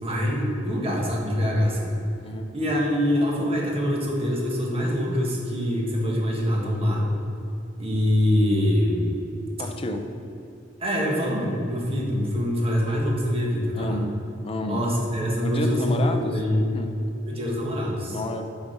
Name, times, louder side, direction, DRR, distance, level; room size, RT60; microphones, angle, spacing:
voice 1, 0.0-1.9 2.5-7.1 7.8-9.2 10.8-14.0 14.7-16.6 17.2-18.2, equal, 30° right, -2 dB, 1.6 m, -24 dB
voice 2, 2.2-2.6 9.6-10.1 13.7-14.1 14.4-14.9 15.4-16.4 16.7-16.9 18.1-18.4, left 2 dB, 30° left, 5 dB, 0.5 m, -30 dB
7.3 x 6.1 x 5.3 m, 2.9 s
head